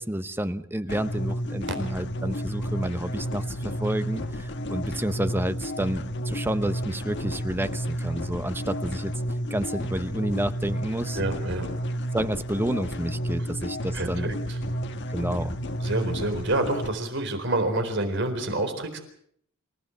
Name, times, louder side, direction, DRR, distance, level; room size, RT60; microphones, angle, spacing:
voice 1, 0.0-9.1 9.5-11.2 12.1-14.3 15.1-15.6, right 1 dB, 10° right, 11 dB, 0.9 m, -30 dB
sound 1, 0.9-16.9, equal, 55° left, 1.4 m, -31 dB
voice 2, 11.1-11.7 13.9-14.6 15.8-19.0, right 2 dB, 55° right, 7 dB, 4.1 m, -28 dB
27.0 x 16.5 x 7.8 m, 0.67 s
head